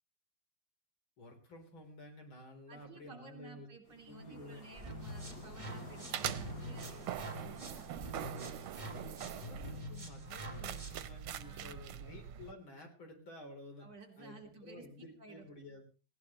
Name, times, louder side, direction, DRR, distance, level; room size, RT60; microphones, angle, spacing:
voice 1, 1.2-3.7 4.1-4.6 9.3-13.9 14.2-15.8, left 1 dB, 75° left, 2 dB, 4.5 m, -52 dB
voice 2, 2.7-8.4 11.4-12.2 13.8-15.5, right 3 dB, 60° right, 2 dB, 3.9 m, -55 dB
sound 1, 3.8-9.4, left 1 dB, 40° left, 4.9 m, -54 dB
sound 2, 4.7-11.1, equal, 20° right, 2.5 m, -46 dB
sound 3, 6.1-12.5, right 10 dB, 90° right, 1.8 m, -43 dB
19.0 x 17.0 x 3.1 m, 0.36 s
omnidirectional pair, 2.2 m